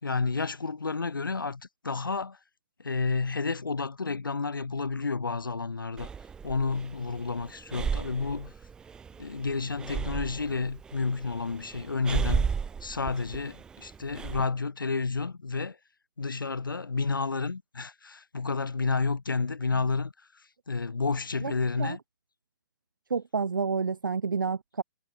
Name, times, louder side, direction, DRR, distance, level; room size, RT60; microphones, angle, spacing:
voice 1, 0.0-2.4 2.8-6.1 6.4-8.5 9.2-12.5 12.8-15.8 16.2-20.1 20.7-22.0, left 4 dB, 75° left, 1.8 m, -30 dB
Breathing, 6.0-14.4, right 6 dB, 5° right, 0.3 m, -34 dB
voice 2, 21.4-22.0 23.1-24.8, right 5 dB, 70° right, 1.4 m, -30 dB
figure-of-eight pair, 125°, 11 cm